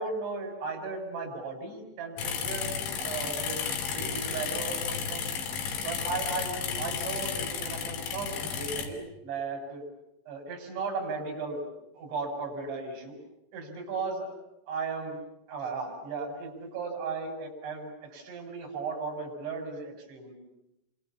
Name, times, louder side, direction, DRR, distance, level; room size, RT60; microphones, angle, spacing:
voice 1, 0.0-5.3 5.8-9.8 10.3-11.7 11.9-13.2 13.5-14.3 14.7-15.2 15.5-20.3, right 4 dB, 85° right, 1 dB, 7.6 m, -36 dB
sound 1, 2.2-8.9, left 6 dB, 85° left, 5.1 m, -33 dB
29.5 x 26.0 x 7.2 m, 0.85 s
omnidirectional pair, 5.1 m